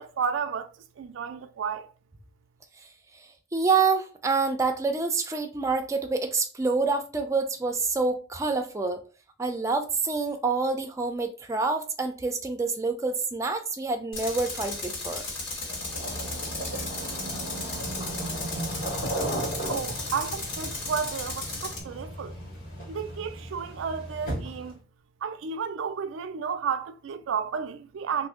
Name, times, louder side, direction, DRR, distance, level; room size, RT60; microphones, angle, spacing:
voice 1, 0.0-1.9 19.7-22.4 22.9-24.8 25.2-28.3, right 6 dB, 80° right, 0.4 m, -32 dB
voice 2, 3.5-9.0 9.4-15.2, right 4 dB, 15° right, 0.4 m, -27 dB
Tools, 14.1-21.8, left 2 dB, 90° left, 1.8 m, -35 dB
sound 1, 15.6-24.8, right 1 dB, 50° left, 1.5 m, -36 dB
2.6 x 2.6 x 3.6 m
head